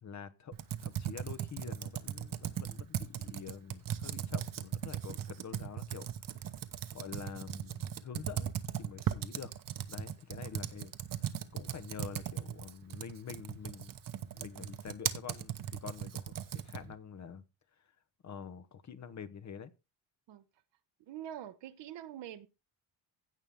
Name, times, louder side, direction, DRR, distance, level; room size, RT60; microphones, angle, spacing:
voice 1, 0.0-6.1 6.9-8.5 8.8-9.5 9.9-13.9 14.2-15.5 15.8-17.4 18.2-19.7, left 7 dB, 40° left, 1.0 m, -47 dB
Computer keyboard, 0.5-16.9, right 10 dB, 50° right, 1.0 m, -38 dB
voice 2, 21.1-22.5, right 11 dB, 70° right, 1.1 m, -44 dB
16.0 x 5.6 x 3.6 m
cardioid pair, 120°, 44 cm